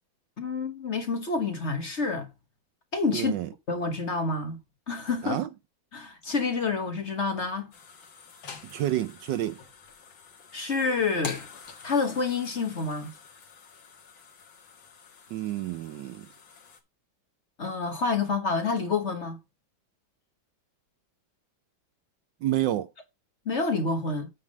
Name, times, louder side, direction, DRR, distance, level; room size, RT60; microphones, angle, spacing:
voice 1, 0.4-2.3 2.9-3.3 3.7-4.6 4.9-5.4 5.9-7.7 10.5-11.5 11.8-13.1 17.6-19.4 23.4-24.3, left 4 dB, 40° left, 1.3 m, -28 dB
voice 2, 3.1-3.5 5.2-5.5 8.6-9.6 15.3-16.3 22.4-22.9, right 13 dB, 75° right, 1.1 m, -29 dB
sound 1, 7.7-16.8, left 6 dB, 70° left, 2.3 m, -46 dB
8.8 x 3.5 x 6.2 m
omnidirectional pair, 2.2 m